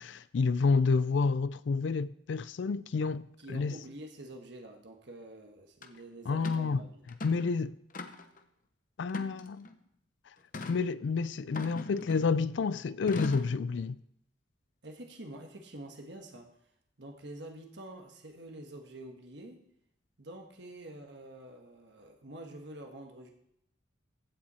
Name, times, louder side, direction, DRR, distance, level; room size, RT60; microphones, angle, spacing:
voice 1, 0.0-3.8 6.3-6.8 7.2-7.7 9.0-9.7 10.7-14.0, left 4 dB, 75° left, 0.4 m, -29 dB
voice 2, 3.4-7.0 14.8-16.7 17.0-19.6 20.2-23.3, right 1 dB, 65° right, 1.3 m, -47 dB
sound 1, 5.8-5.9 6.4-6.7 7.1-7.5 7.9-8.4 9.1-9.7 10.5-10.8 11.5-12.4 13.1-13.6, left 2 dB, 45° left, 0.8 m, -40 dB
15.5 x 7.5 x 4.3 m
head